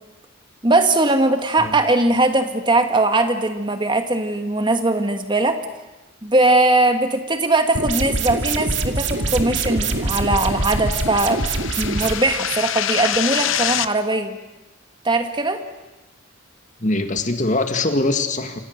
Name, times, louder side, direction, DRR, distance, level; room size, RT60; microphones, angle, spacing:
voice 1, 0.6-5.6 6.2-11.4 11.8-14.4 15.0-15.6, right 2 dB, 25° right, 7 dB, 1.9 m, -20 dB
sound 1, 7.8-12.1, right 3 dB, 65° right, 2.3 m, -24 dB
sound 2, 9.4-13.9, left 10 dB, 80° left, 0.8 m, -27 dB
voice 2, 16.8-18.6, left 2 dB, 40° left, 6 dB, 2.0 m, -22 dB
27.5 x 26.5 x 6.6 m, 1.1 s
head